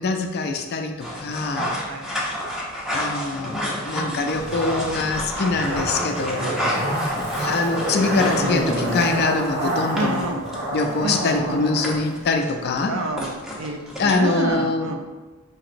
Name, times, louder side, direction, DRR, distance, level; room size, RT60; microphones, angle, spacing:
voice 1, 0.0-1.7 2.9-6.5 7.2-10.3 10.7-13.0 14.0-14.9, left 3 dB, 50° left, 4 dB, 0.4 m, -24 dB
sound 1, 1.0-14.5, equal, ahead, 0.6 m, -30 dB
voice 2, 1.5-2.6 3.9-4.4 5.7-5.9 6.4-6.8 9.9-10.4 11.0-11.6 12.9-15.0, right 2 dB, 70° right, 4 dB, 0.5 m, -30 dB
Zipper (clothing), 4.3-12.0 12.3-12.4, right 1 dB, 45° right, 1.0 m, -28 dB
5.1 x 2.9 x 2.5 m, 1.2 s
head